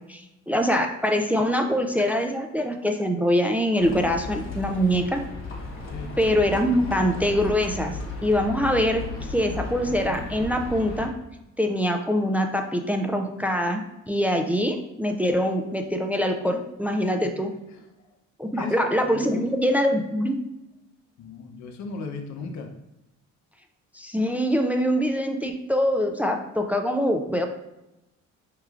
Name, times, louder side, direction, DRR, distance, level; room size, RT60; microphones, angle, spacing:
voice 1, 0.5-5.2 6.2-9.0 9.3-11.1 11.6-17.5 18.4-20.4 23.9-27.5, equal, 5° right, 4 dB, 0.3 m, -24 dB
Livestock farm animals working animals, 3.8-11.1, left 3 dB, 45° left, 1.0 m, -35 dB
voice 2, 18.5-19.5 21.2-22.7, left 4 dB, 70° left, 4 dB, 0.6 m, -36 dB
4.6 x 3.1 x 2.4 m, 0.94 s
cardioid pair, 90°, 30 cm